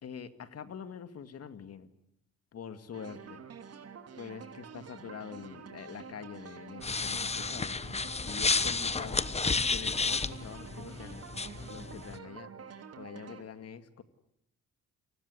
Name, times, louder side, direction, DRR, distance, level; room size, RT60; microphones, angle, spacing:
voice 1, 0.0-1.9 2.5-3.4 4.2-7.8 8.2-9.2 9.7-11.2 11.7-12.5 13.0-14.0, left 7 dB, 55° left, 10 dB, 2.2 m, -45 dB
sound 1, 2.9-13.4, right 7 dB, 55° right, 3.2 m, -48 dB
sound 2, 6.8-12.2, left 4 dB, 20° left, 1.0 m, -32 dB
29.0 x 20.0 x 9.6 m, 0.78 s
cardioid pair, 90°, 30 cm